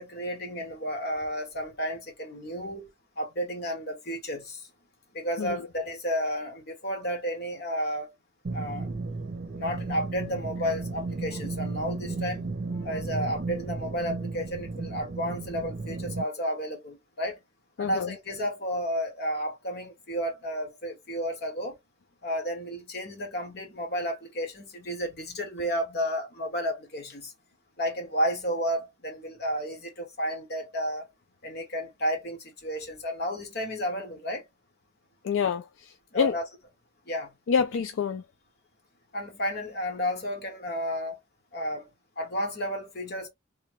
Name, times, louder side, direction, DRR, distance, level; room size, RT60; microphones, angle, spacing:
voice 1, 0.0-2.9 3.2-4.7 5.1-8.1 8.5-8.9 9.6-12.5 12.8-17.4 17.8-21.7 22.2-27.3 27.8-31.1 31.4-34.4 36.1-36.5 37.1-37.3 39.1-41.2 41.5-41.9 42.2-43.3, equal, 55° left, 1.3 m, -32 dB
sound 1, 8.4-16.2, right 3 dB, 50° right, 0.6 m, -34 dB
voice 2, 17.8-18.1 35.2-36.3 37.5-38.2, left 6 dB, 75° left, 0.3 m, -27 dB
3.3 x 2.2 x 3.3 m
head